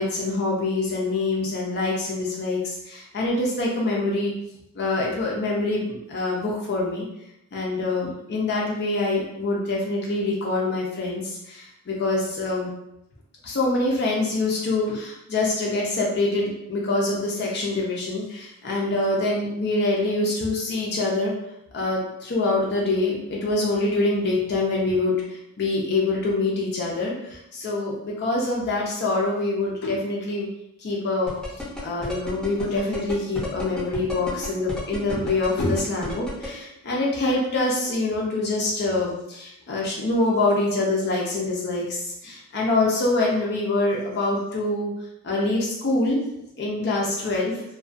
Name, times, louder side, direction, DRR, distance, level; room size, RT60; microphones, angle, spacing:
voice 1, 0.0-4.3 4.7-7.1 7.5-12.7 13.4-21.3 21.7-30.5 30.8-31.3 31.8-44.9 45.2-46.2 46.6-47.6, left 2 dB, 50° left, -3 dB, 0.4 m, -25 dB
sound 1, 31.3-36.5, left 1 dB, 5° left, 0.6 m, -32 dB
2.3 x 2.2 x 2.4 m, 0.83 s
head